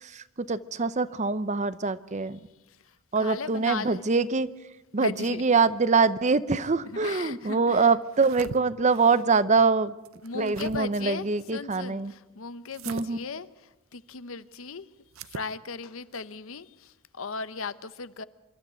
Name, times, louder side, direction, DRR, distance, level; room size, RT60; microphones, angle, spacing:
voice 1, 0.0-2.4 3.1-4.5 4.9-9.9 10.3-12.1 12.9-13.2, right 4 dB, 35° right, 16 dB, 0.6 m, -24 dB
voice 2, 3.2-4.1 5.0-5.4 6.9-7.9 10.2-13.5 13.9-14.9 15.2-18.2, left 4 dB, 65° left, 15 dB, 0.8 m, -37 dB
sound 1, 8.0-8.6 10.1-10.8 12.7-13.1 15.1-15.5, right 5 dB, 70° right, 0.7 m, -40 dB
26.5 x 12.5 x 9.2 m, 1.0 s
head